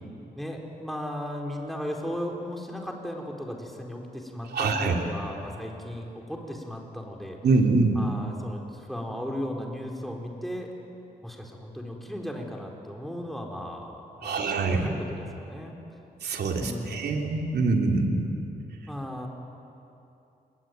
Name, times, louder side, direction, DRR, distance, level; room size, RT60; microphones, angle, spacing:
voice 1, 0.4-7.4 7.9-10.7 11.2-15.8 16.6-17.3 18.9-19.3, equal, ahead, 1 dB, 4.4 m, -36 dB
voice 2, 4.5-4.9 7.4-8.0 14.2-14.9 16.2-18.3, right 3 dB, 80° right, 2 dB, 3.3 m, -24 dB
28.5 x 21.5 x 9.5 m, 2.8 s
cardioid pair, 105°, 17 cm